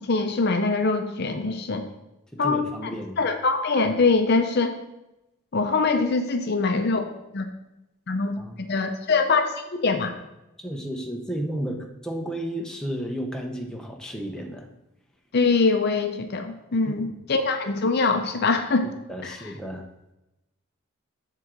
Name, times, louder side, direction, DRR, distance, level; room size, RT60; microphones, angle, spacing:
voice 1, 0.1-1.8 2.4-2.9 3.2-4.8 5.5-7.1 7.3-7.5 8.1-10.1 15.3-18.9 19.2-19.4, left 4 dB, 45° left, 6 dB, 0.6 m, -23 dB
voice 2, 2.3-3.2 8.4-8.5 10.6-14.7 16.9-17.1 19.1-19.8, right 1 dB, 5° left, 0 dB, 0.7 m, -33 dB
7.8 x 3.8 x 6.0 m, 0.93 s
head